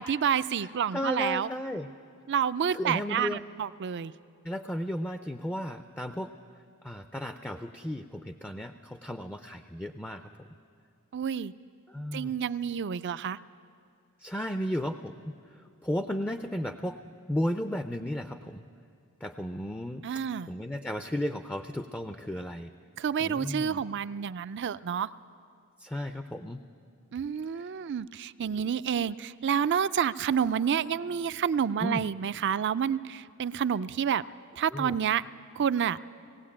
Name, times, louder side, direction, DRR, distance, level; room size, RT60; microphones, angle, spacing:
voice 1, 0.0-1.5 2.3-4.1 11.1-11.5 12.1-13.4 20.0-20.5 23.0-25.1 27.1-34.2 34.6-35.2 35.6-36.0, right 8 dB, 50° right, 16 dB, 0.4 m, -29 dB
voice 2, 0.9-1.9 2.7-3.4 4.4-6.3 6.8-10.2 11.9-12.4 14.2-15.3 15.8-17.0 17.3-18.6 19.2-20.0 20.5-22.7 23.2-23.8 25.8-26.6 31.8-32.0 34.7-35.0, equal, 10° left, 8 dB, 0.5 m, -34 dB
18.5 x 17.0 x 8.6 m, 2.3 s
head